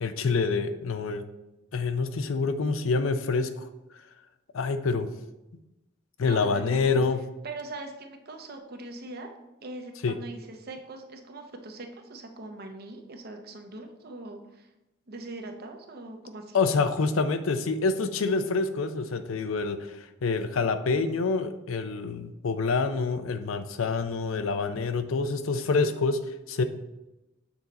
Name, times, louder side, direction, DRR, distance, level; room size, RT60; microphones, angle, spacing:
voice 1, 0.0-1.2 1.7-3.7 4.5-5.1 6.2-7.2 10.0-10.1 16.5-26.2 26.5-26.6, left 4 dB, 80° left, 10 dB, 0.5 m, -27 dB
voice 2, 6.2-7.0 7.4-9.3 9.6-14.7 15.1-16.6, right 2 dB, 50° right, 5 dB, 0.8 m, -41 dB
7.1 x 3.9 x 4.1 m, 0.97 s
head